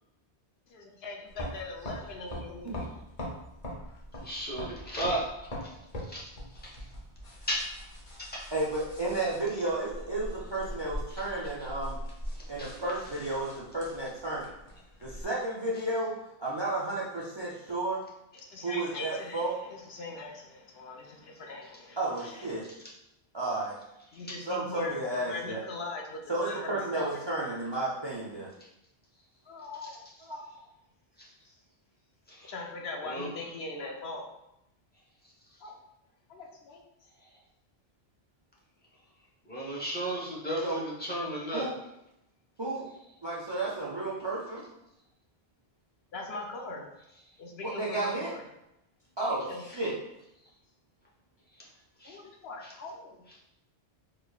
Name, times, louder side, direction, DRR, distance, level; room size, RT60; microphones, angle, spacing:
voice 1, 0.7-2.7 18.3-22.5 24.1-27.1 29.4-30.0 32.4-34.2 35.6-35.7 36.3-36.8 46.1-46.9 47.4-48.4 49.3-49.6 52.0-53.2, left 3 dB, 75° left, 0 dB, 0.9 m, -41 dB
sound 1, 1.3-15.2, equal, 40° left, 0.8 m, -42 dB
voice 2, 4.2-5.2 5.6-5.7 6.0-6.2 6.6-6.8 7.5-7.7 8.2-8.5 12.3-12.8 24.3-24.4 31.2-31.3 32.3-32.5 33.0-33.3 39.5-41.7 52.0-52.2 52.6-52.7, right 1 dB, 10° left, -4 dB, 0.7 m, -34 dB
voice 3, 8.5-12.0 12.5-14.5 15.0-18.0 18.6-19.6 22.0-22.7 23.3-23.7 24.5-25.6 26.3-28.5 30.2-30.5 40.6-40.8 41.5-41.7 42.6-42.9 43.2-44.7 47.6-48.3 49.2-49.9, right 2 dB, 40° right, -5 dB, 0.4 m, -32 dB
5.0 x 2.3 x 2.3 m, 0.86 s
omnidirectional pair, 1.1 m